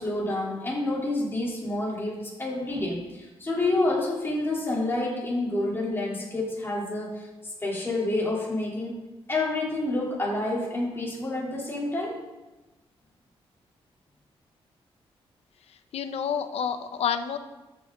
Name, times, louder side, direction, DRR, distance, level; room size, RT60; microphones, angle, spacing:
voice 1, 0.0-7.3 7.6-9.0 9.3-12.2, left 2 dB, 20° left, -5 dB, 3.6 m, -28 dB
voice 2, 15.7-17.4, left 7 dB, 85° left, 9 dB, 0.9 m, -29 dB
13.5 x 6.5 x 3.9 m, 1.1 s
cardioid pair, 105°, 10 cm